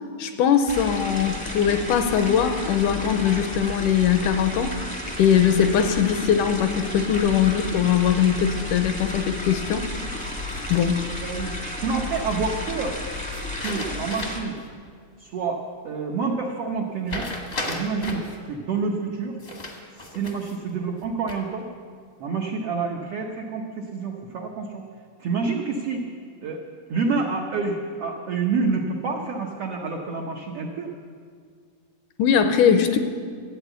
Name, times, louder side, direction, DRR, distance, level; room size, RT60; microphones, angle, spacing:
voice 1, 0.2-4.7 5.2-9.9 10.7-11.1 32.2-33.0, left 8 dB, 80° left, 8 dB, 2.0 m, -21 dB
sound 1, 0.6-14.4, left 2 dB, 10° left, 0.4 m, -32 dB
sound 2, 10.2-11.1 13.3-14.6 15.0-15.1 17.1-18.4 19.4-20.6 21.0-21.6, left 2 dB, 55° left, 0.6 m, -35 dB
voice 2, 11.2-13.0 13.6-14.6 15.2-17.3 17.7-19.4 20.0-21.7 22.2-24.8 25.2-26.1 26.4-26.6 26.9-30.9, right 4 dB, 85° right, 1 dB, 1.3 m, -28 dB
13.0 x 9.0 x 8.0 m, 2.1 s
omnidirectional pair, 4.0 m